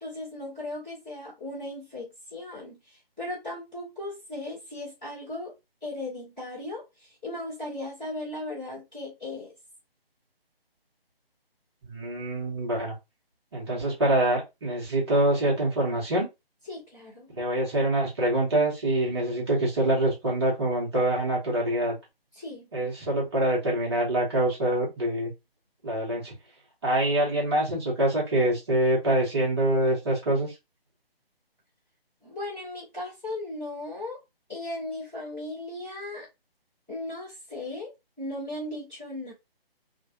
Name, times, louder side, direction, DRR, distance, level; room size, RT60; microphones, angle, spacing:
voice 1, 0.0-5.5 5.8-9.5 16.7-17.3 22.3-22.7 32.2-34.2 34.5-36.3 36.9-39.3, left 2 dB, ahead, 0.5 m, -37 dB
voice 2, 11.8-12.9 13.5-16.3 17.3-22.0 22.7-25.3 25.8-26.3 26.8-30.5, right 1 dB, 25° right, 1.1 m, -25 dB
3.1 x 2.1 x 2.6 m
figure-of-eight pair, 150°, 30 cm